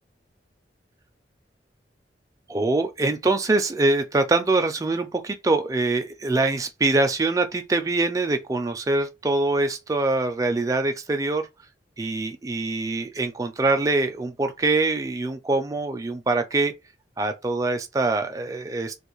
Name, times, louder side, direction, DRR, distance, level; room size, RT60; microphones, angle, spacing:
voice 1, 2.5-11.5 12.0-16.7 17.2-19.0, right 2 dB, 20° right, 0.3 m, -24 dB
2.4 x 2.3 x 3.0 m
head